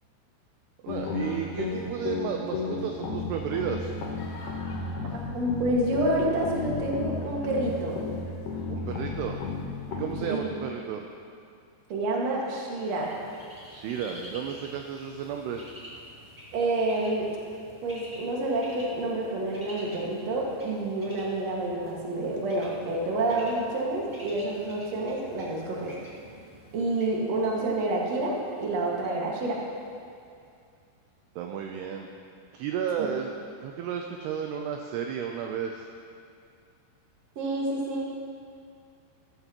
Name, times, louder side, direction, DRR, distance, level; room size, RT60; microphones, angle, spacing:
voice 1, 0.8-3.9 8.7-9.4 9.9-11.1 13.7-15.6 31.4-32.1 32.5-35.9, right 7 dB, 80° right, 3 dB, 2.5 m, -33 dB
sound 1, 0.9-10.4, left 3 dB, 75° left, 1.8 m, -34 dB
voice 2, 5.3-8.0 10.2-10.5 11.9-13.1 16.5-17.3 17.8-25.9 26.7-29.6 33.0-33.1 37.4-38.1, right 2 dB, 50° right, -3 dB, 2.3 m, -28 dB
Bird, 12.8-30.5, equal, 10° right, 1.4 m, -49 dB
16.5 x 14.0 x 3.0 m, 2.4 s
omnidirectional pair, 5.2 m